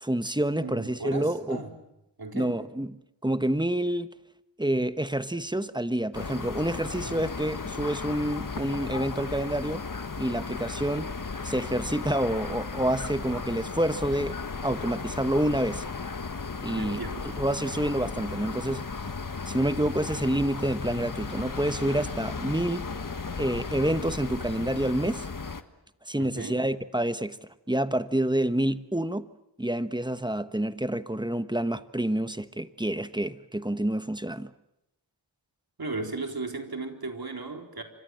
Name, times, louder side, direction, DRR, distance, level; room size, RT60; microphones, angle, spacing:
voice 1, 0.0-1.6 2.3-2.9 3.2-4.1 4.6-9.8 10.2-11.1 11.4-15.8 16.6-17.0 17.4-18.8 19.4-22.9 23.4-25.3 26.1-27.4 27.7-29.3 29.6-34.5, right 1 dB, 10° right, 12 dB, 1.2 m, -28 dB
voice 2, 0.6-1.7 2.2-2.6 16.8-17.3 26.2-26.6 35.8-37.8, right 3 dB, 55° right, 4 dB, 4.0 m, -36 dB
sound 1, 6.1-25.6, left 4 dB, 45° left, 1.6 m, -35 dB
29.0 x 25.0 x 7.7 m, 0.88 s
wide cardioid pair, 60°, 44 cm